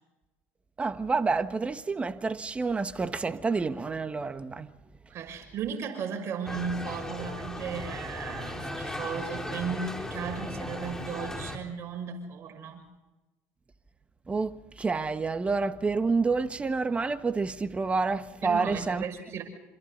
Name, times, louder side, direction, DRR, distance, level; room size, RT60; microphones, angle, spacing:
voice 1, 0.8-4.7 14.3-19.0, right 4 dB, 20° right, 1.5 m, -28 dB
voice 2, 5.1-12.8 18.4-19.4, right 6 dB, 50° right, 6.2 m, -35 dB
sound 1, 6.5-11.6, left 1 dB, 10° left, 3.7 m, -37 dB
27.0 x 27.0 x 4.0 m
supercardioid pair, 85°, 6 cm